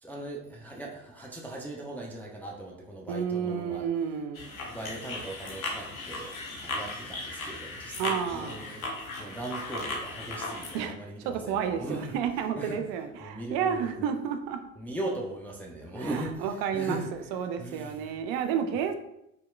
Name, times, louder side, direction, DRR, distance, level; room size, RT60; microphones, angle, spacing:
voice 1, 0.0-3.9 4.6-12.2 12.6-12.8 13.2-14.0 14.8-17.1 17.6-18.2, right 2 dB, 5° left, -2 dB, 0.3 m, -39 dB
voice 2, 3.1-4.5 7.9-8.6 10.7-10.9 11.2-14.6 16.0-17.0 17.3-18.9, right 7 dB, 55° right, 7 dB, 0.5 m, -31 dB
sound 1, 4.4-10.9, left 2 dB, 90° left, 0.8 m, -37 dB
3.8 x 2.8 x 2.3 m, 0.81 s
hypercardioid pair, 75°, 41 cm